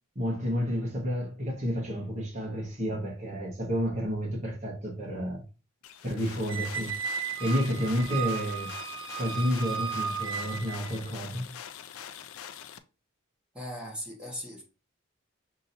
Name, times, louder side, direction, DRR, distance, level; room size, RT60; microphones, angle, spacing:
voice 1, 0.1-5.4 6.0-6.9 7.4-8.7 9.1-11.5, equal, 35° right, 1.2 m, -30 dB
sound 1, 5.8-12.8, left 9 dB, 90° left, 0.4 m, -44 dB
Squeak, 6.5-11.0, right 7 dB, 70° right, 0.5 m, -35 dB
voice 2, 7.7-8.1 13.5-14.6, equal, 5° right, 1.2 m, -39 dB
6.1 x 2.8 x 2.6 m
head